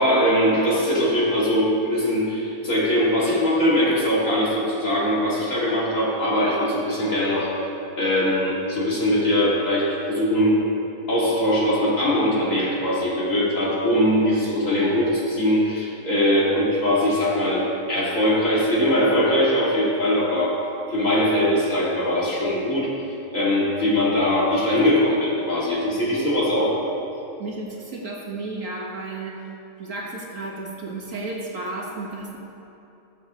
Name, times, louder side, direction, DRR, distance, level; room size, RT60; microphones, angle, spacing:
voice 1, 0.0-7.5 8.0-10.6 11.1-20.6 20.9-22.9 23.3-26.8, equal, 55° left, -7 dB, 2.8 m, -21 dB
voice 2, 27.4-29.4 29.8-32.4, right 2 dB, 55° right, -4 dB, 1.8 m, -33 dB
20.0 x 7.2 x 3.0 m, 2.9 s
omnidirectional pair, 1.7 m